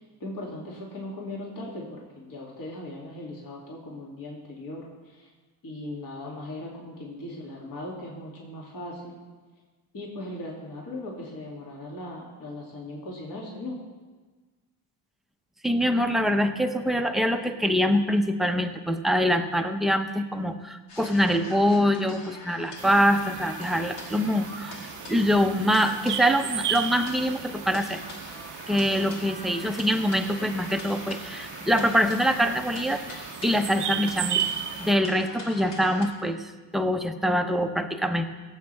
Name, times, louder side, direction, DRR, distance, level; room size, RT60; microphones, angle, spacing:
voice 1, 0.0-5.3 5.6-9.2 9.9-13.8, left 1 dB, 50° left, -4 dB, 2.7 m, -38 dB
voice 2, 15.6-28.0 28.7-34.4 34.8-38.3, equal, ahead, 5 dB, 0.7 m, -24 dB
sound 1, 20.9-36.1, left 3 dB, 70° left, 2.1 m, -43 dB
sound 2, 22.8-34.9, right 9 dB, 45° right, 0.6 m, -35 dB
17.5 x 8.0 x 3.4 m, 1.3 s
cardioid pair, 100°, 44 cm